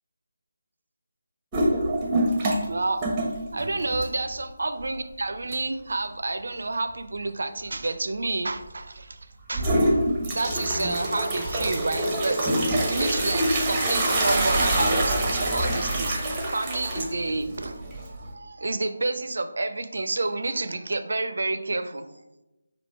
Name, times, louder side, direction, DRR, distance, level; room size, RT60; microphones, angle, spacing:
sound 1, 1.5-2.7 3.0-4.4 4.8-4.9 5.5-5.6 9.5-18.3, right 1 dB, 15° right, 0.7 m, -25 dB
voice 1, 2.7-3.1 3.5-9.2 9.5-9.8 10.3-12.5 12.9-22.1, right 2 dB, 55° right, 9 dB, 0.4 m, -29 dB
4.2 x 2.6 x 4.5 m, 0.99 s
figure-of-eight pair, 155°, 0 cm